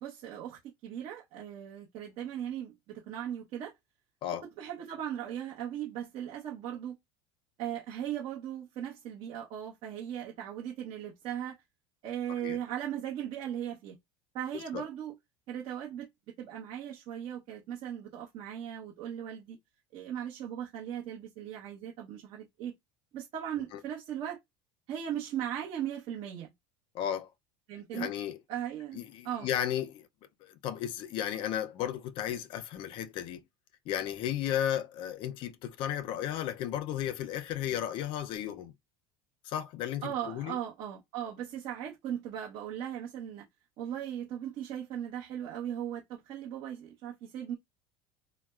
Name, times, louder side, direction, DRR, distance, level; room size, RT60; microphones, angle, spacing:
voice 1, 0.0-3.7 4.6-7.0 7.6-11.6 12.0-14.0 14.3-15.1 15.5-16.1 16.4-19.6 19.9-22.7 23.1-24.4 24.9-26.5 27.7-28.1 28.5-29.5 40.0-43.5 43.8-47.6, right 10 dB, 45° right, 0.8 m, -38 dB
voice 2, 26.9-27.3 27.9-28.4 28.9-30.1 30.4-33.4 33.9-38.7 39.4-40.6, left 10 dB, 45° left, 0.5 m, -34 dB
4.0 x 2.0 x 2.3 m
cardioid pair, 155°, 12 cm